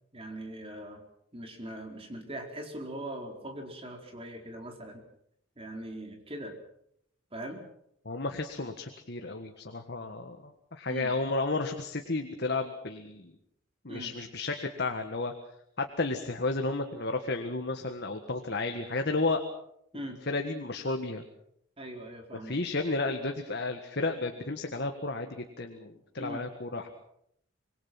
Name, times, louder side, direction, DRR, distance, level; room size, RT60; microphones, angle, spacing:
voice 1, 0.1-1.0 1.3-5.0 5.6-6.5 7.3-7.6 10.9-11.1 13.9-14.1 19.9-20.2 21.8-22.6 26.2-26.5, right 1 dB, 30° right, 2 dB, 4.3 m, -41 dB
voice 2, 8.1-13.3 13.8-15.3 15.8-19.4 20.3-21.2 22.4-26.9, left 3 dB, 55° left, 5 dB, 1.7 m, -32 dB
26.0 x 21.5 x 6.0 m, 0.72 s
head